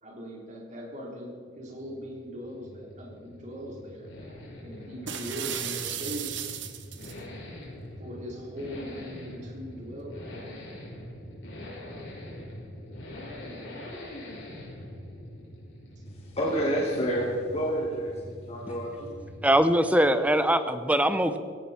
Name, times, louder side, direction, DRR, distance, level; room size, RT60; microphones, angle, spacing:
voice 1, 0.0-4.1 4.6-6.5 8.0-10.4 11.7-12.1 13.4-13.6, equal, 40° right, -2 dB, 4.1 m, -40 dB
Accelerating revving vroom, 1.5-19.6 19.9-20.0, left 1 dB, 65° left, 5.5 m, -43 dB
sound 1, 5.1-7.2, right 9 dB, 65° right, 1.3 m, -35 dB
voice 2, 16.2-19.1, equal, 35° left, -3 dB, 2.4 m, -29 dB
voice 3, 19.4-21.4, right 1 dB, 5° right, 10 dB, 0.8 m, -22 dB
17.0 x 16.0 x 4.5 m, 2.1 s
head